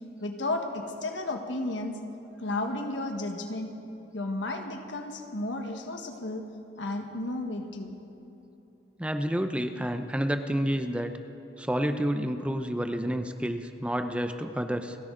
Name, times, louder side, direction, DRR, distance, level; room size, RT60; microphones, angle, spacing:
voice 1, 0.2-2.0 2.4-3.7 4.1-6.5 6.8-8.0, left 2 dB, 85° left, 4 dB, 1.4 m, -33 dB
voice 2, 9.0-11.1 11.6-15.0, equal, 5° right, 7 dB, 0.6 m, -29 dB
29.5 x 10.5 x 3.9 m, 3.0 s
head